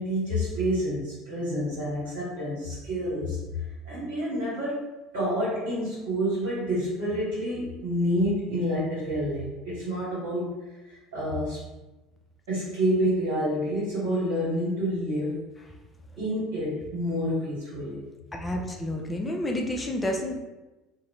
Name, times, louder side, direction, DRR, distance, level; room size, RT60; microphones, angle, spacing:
voice 1, 0.0-4.8 5.1-11.6 12.5-15.4 16.2-18.0, equal, 65° right, -10 dB, 1.3 m, -28 dB
voice 2, 18.3-20.4, left 1 dB, 20° left, 1 dB, 0.5 m, -30 dB
2.8 x 2.5 x 3.0 m, 1.1 s
hypercardioid pair, 65°, 0 cm